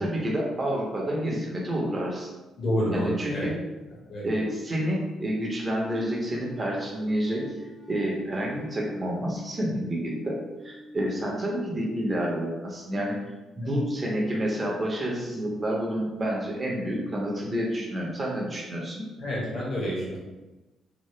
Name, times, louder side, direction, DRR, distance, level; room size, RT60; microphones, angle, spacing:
voice 1, 0.0-2.3 2.9-3.5 4.2-7.4 7.9-10.4 10.6-13.2 13.6-19.0, equal, 30° right, -2 dB, 0.8 m, -29 dB
voice 2, 2.6-3.5 4.1-4.3 19.2-20.2, equal, 50° left, -6 dB, 1.2 m, -28 dB
sound 1, 5.8-12.2, equal, 25° left, 0.4 m, -47 dB
2.8 x 2.0 x 3.2 m, 1.1 s
cardioid pair, 90°, 0 cm